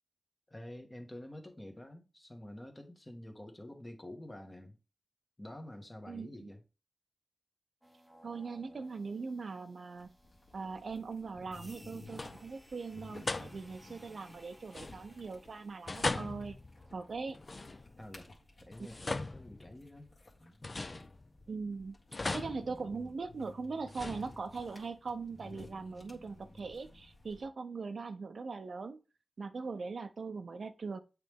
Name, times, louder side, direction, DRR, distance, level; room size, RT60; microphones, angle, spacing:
voice 1, 0.5-4.8 5.4-6.6 18.0-18.3 18.6-20.1 20.4-21.1, left 1 dB, 20° left, 1.3 m, -48 dB
voice 2, 6.1-6.5 8.2-10.1 10.5-16.6 16.9-17.4 21.5-22.0 22.3-29.0 29.4-31.0, right 4 dB, 75° right, 0.6 m, -41 dB
sound 1, 7.8-17.9, equal, 5° right, 1.2 m, -60 dB
sound 2, 10.0-27.5, left 2 dB, 55° left, 1.8 m, -56 dB
sound 3, 11.4-11.8 12.1-12.6 13.3-13.9 14.7-15.4 15.9-18.1 18.7-20.1 20.6-21.6 22.1-23.4 23.9-24.8, left 2 dB, 40° left, 0.4 m, -40 dB
8.5 x 3.2 x 3.5 m
wide cardioid pair, 80°, 0 cm